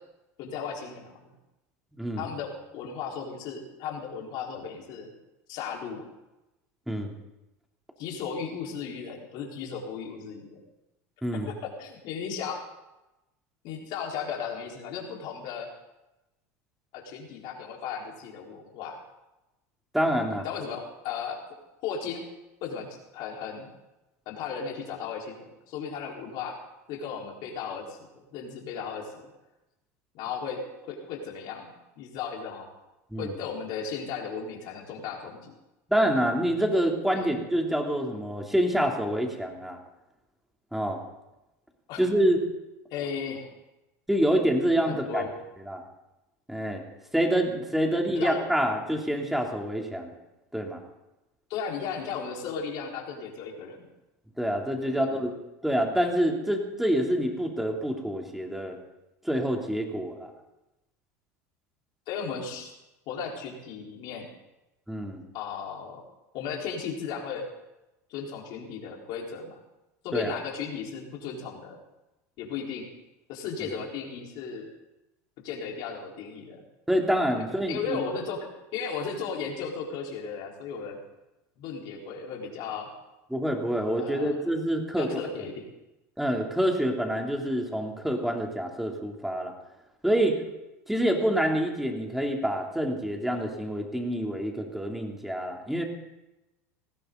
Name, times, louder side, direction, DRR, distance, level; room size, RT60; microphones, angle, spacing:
voice 1, 0.4-1.1 2.2-5.1 5.5-6.0 8.0-10.6 11.4-12.6 13.6-15.7 16.9-19.0 20.4-21.4 21.8-22.2 22.6-23.7 24.3-26.6 26.9-29.3 30.1-30.6 30.9-32.7 33.2-35.5 37.1-37.3 41.9-42.0 42.9-43.5 44.9-45.3 48.1-48.4 51.5-53.9 54.8-55.1 62.1-62.7 63.1-64.3 65.3-66.0 66.3-67.4 68.1-69.6 70.0-71.8 72.4-72.9 73.3-74.7 75.4-76.6 77.7-81.0 81.6-82.9 84.0-84.4 85.0-85.7, left 6 dB, 60° left, -1 dB, 4.6 m, -35 dB
voice 2, 2.0-2.3 6.9-7.1 11.2-11.5 19.9-20.4 33.1-33.4 35.9-39.8 40.7-41.0 42.0-42.4 44.1-45.2 45.7-45.8 46.5-46.8 47.1-50.1 50.5-50.8 54.4-55.3 55.6-58.8 59.2-60.3 64.9-65.2 70.1-70.4 76.9-78.0 83.3-85.1 86.2-89.5 90.0-90.4 90.9-95.8, equal, 5° right, 1 dB, 3.3 m, -27 dB
20.0 x 15.5 x 4.0 m, 0.98 s
hypercardioid pair, 90°, 8 cm